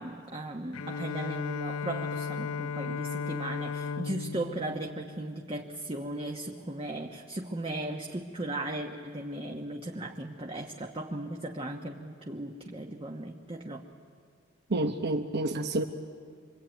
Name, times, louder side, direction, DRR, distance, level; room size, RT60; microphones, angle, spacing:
voice 1, 0.0-13.8, right 1 dB, 25° right, 1 dB, 1.2 m, -37 dB
Bowed string instrument, 0.7-6.0, left 5 dB, 80° left, 0.6 m, -36 dB
voice 2, 14.7-15.8, right 2 dB, 55° right, 5 dB, 1.1 m, -29 dB
25.5 x 22.5 x 9.2 m, 2.1 s
head